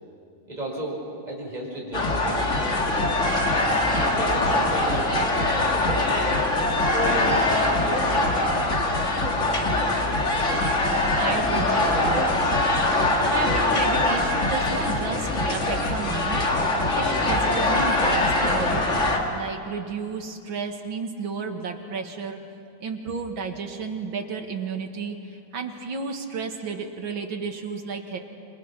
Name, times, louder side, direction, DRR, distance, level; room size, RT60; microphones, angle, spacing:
voice 1, 0.5-1.0 1.3-3.4 4.0-6.5 6.9-8.2, right 1 dB, 20° right, -3 dB, 5.4 m, -34 dB
sound 1, 1.9-19.2, left 2 dB, 35° left, 2.3 m, -23 dB
voice 2, 11.2-12.6 13.2-16.4 17.0-22.4 22.8-28.2, right 5 dB, 75° right, 4 dB, 2.6 m, -32 dB
28.5 x 25.5 x 6.0 m, 2.7 s
omnidirectional pair, 2.2 m